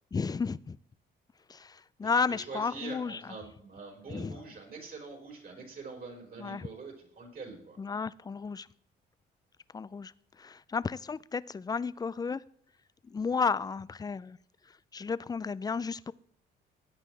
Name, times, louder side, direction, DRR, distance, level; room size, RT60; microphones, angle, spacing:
voice 1, 0.1-0.8 1.5-3.2 4.1-4.4 6.4-6.7 7.8-8.7 9.7-10.1 10.4-12.4 13.0-14.4 14.9-16.1, left 5 dB, 20° left, 0.4 m, -33 dB
voice 2, 2.0-7.8, right 4 dB, 50° right, 4.5 m, -44 dB
16.0 x 9.0 x 3.3 m
cardioid pair, 90°, 20 cm